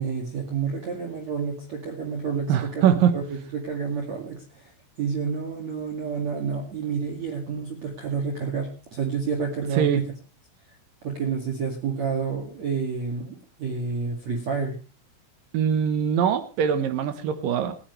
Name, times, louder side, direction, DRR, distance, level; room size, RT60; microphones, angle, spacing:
voice 1, 0.0-4.7 5.0-10.1 11.0-14.7, right 5 dB, 45° right, 2 dB, 2.6 m, -29 dB
voice 2, 2.5-3.2 9.7-10.0 15.5-17.7, right 8 dB, 85° right, 8 dB, 1.9 m, -22 dB
28.5 x 10.0 x 3.3 m, 0.34 s
omnidirectional pair, 5.8 m